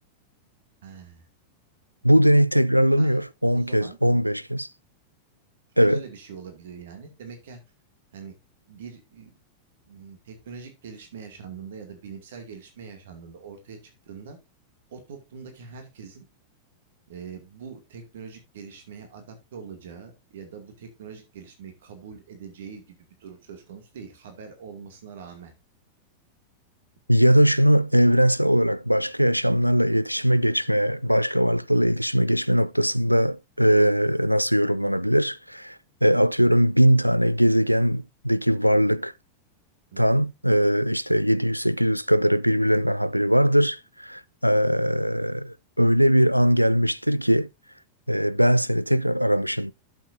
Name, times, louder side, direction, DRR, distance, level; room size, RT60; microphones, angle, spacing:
voice 1, 0.8-1.3 3.0-4.0 5.7-7.6 8.1-8.4 8.7-9.4 9.9-14.4 14.9-16.2 17.1-25.5 39.9-40.2, right 6 dB, 60° right, 2.3 m, -43 dB
voice 2, 2.0-4.7 5.8-6.0 27.1-39.1 40.0-47.5 48.1-49.7, equal, 90° right, 0.4 m, -20 dB
11.5 x 7.1 x 2.6 m
figure-of-eight pair, 90°, 0 cm